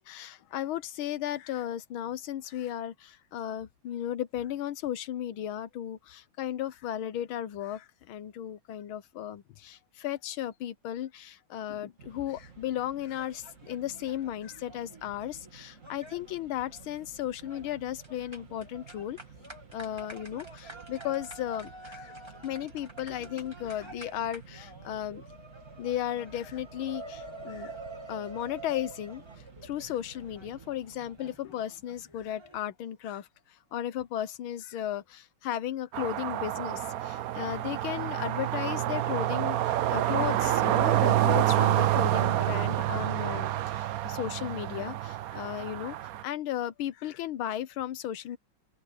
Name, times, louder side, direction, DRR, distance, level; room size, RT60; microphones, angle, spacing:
voice 1, 0.0-19.2 19.7-22.1 22.4-25.2 25.8-27.7 28.1-29.2 29.6-33.3 33.7-46.0 46.2-48.4, left 11 dB, 85° left, 1.8 m, -35 dB
Mechanisms, 12.0-31.4, right 6 dB, 40° right, 2.3 m, -53 dB
sound 1, 13.1-32.6, right 2 dB, 15° right, 2.5 m, -48 dB
sound 2, 35.9-46.2, right 13 dB, 75° right, 0.8 m, -28 dB
open air
omnidirectional pair, 2.2 m